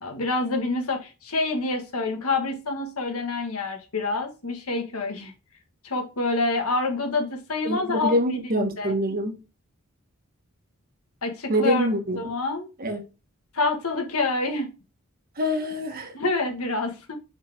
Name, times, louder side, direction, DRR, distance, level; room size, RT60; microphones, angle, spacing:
voice 1, 0.0-5.3 5.8-8.9 11.2-11.9 12.1-12.7 13.5-14.7 16.1-17.1, left 3 dB, 75° left, 1.7 m, -27 dB
voice 2, 7.6-9.3 11.5-12.2 12.8-13.0 15.4-16.1, equal, 45° right, 1.6 m, -25 dB
6.1 x 5.4 x 3.6 m
head